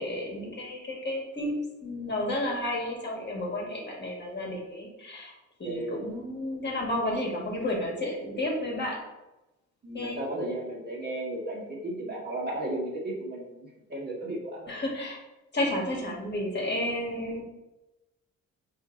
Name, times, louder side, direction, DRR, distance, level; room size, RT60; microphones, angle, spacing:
voice 1, 0.0-1.5 1.8-5.3 5.6-9.0 9.9-10.2 14.7-15.2 15.5-17.4, left 1 dB, 35° left, -2 dB, 1.3 m, -31 dB
voice 2, 5.6-6.0 9.8-14.7, right 1 dB, 35° right, -4 dB, 1.3 m, -34 dB
4.6 x 2.7 x 3.7 m, 1.0 s
cardioid pair, 90°, 30 cm